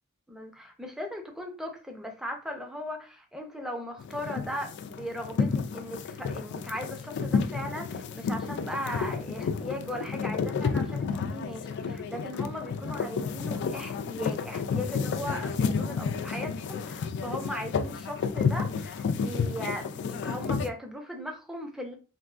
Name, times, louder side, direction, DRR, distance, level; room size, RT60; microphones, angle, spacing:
voice 1, 0.3-22.0, equal, ahead, 2 dB, 0.5 m, -38 dB
sound 1, 4.0-20.7, left 5 dB, 55° left, 0.3 m, -31 dB
3.4 x 2.5 x 2.4 m, 0.36 s
head